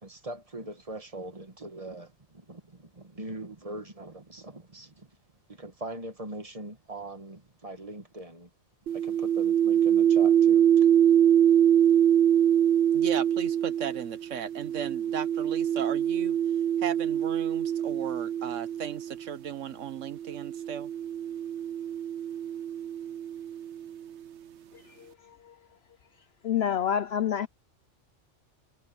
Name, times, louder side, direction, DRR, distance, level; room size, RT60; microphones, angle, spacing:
voice 1, 0.0-2.1 2.5-2.6 3.0-4.9 5.6-8.5 9.0-10.6, right 2 dB, 30° right, 1.9 m, -41 dB
sound 1, 8.9-19.2 20.1-23.9, right 9 dB, 70° right, 1.0 m, -24 dB
voice 2, 12.9-16.4 16.8-20.9, right 8 dB, 85° right, 1.4 m, -36 dB
voice 3, 26.4-27.5, left 9 dB, 65° left, 0.9 m, -26 dB
omnidirectional pair, 1.2 m